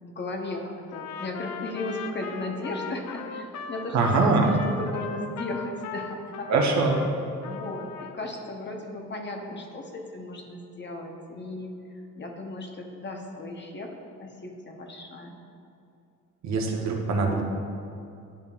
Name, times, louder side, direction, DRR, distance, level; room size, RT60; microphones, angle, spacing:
voice 1, 0.0-6.5 7.4-11.7 12.2-13.9 14.2-15.4, left 2 dB, 35° left, 1 dB, 1.0 m, -36 dB
Trumpet, 0.9-7.1 7.4-8.2, left 6 dB, 65° left, 0.6 m, -38 dB
voice 2, 3.9-4.5 6.5-7.0 16.4-17.4, right 3 dB, 65° right, 0 dB, 1.1 m, -23 dB
11.0 x 5.2 x 2.5 m, 2.6 s
cardioid pair, 90°, 30 cm